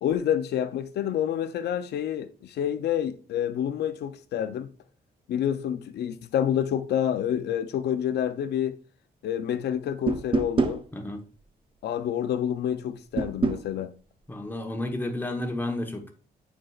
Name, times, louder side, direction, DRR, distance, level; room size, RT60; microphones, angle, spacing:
voice 1, 0.0-4.7 5.3-8.8 9.2-10.8 11.8-13.9, left 10 dB, 85° left, 0.5 m, -28 dB
sound 1, 10.1-10.8 13.2-13.7, right 4 dB, 30° right, 0.5 m, -25 dB
voice 2, 10.9-11.2 14.3-16.1, left 1 dB, 10° left, 1.0 m, -31 dB
8.8 x 4.6 x 2.3 m
cardioid pair, 125°, 17 cm